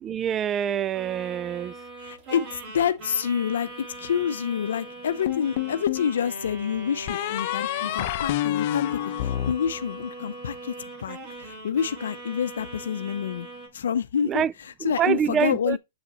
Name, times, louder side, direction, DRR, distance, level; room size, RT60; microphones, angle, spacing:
voice 1, 0.0-1.7 14.2-14.5 14.8-15.8, right 9 dB, 25° right, 0.3 m, -26 dB
sound 1, 0.9-8.5 8.8-13.7, right 2 dB, 40° right, 4.4 m, -41 dB
voice 2, 2.0-10.7 11.0-13.5 13.7-15.8, left 8 dB, 85° left, 0.6 m, -28 dB
sound 2, 5.2-6.1 7.1-10.4, left 13 dB, 50° left, 0.8 m, -28 dB
7.3 x 6.6 x 3.0 m
hypercardioid pair, 135°, 0 cm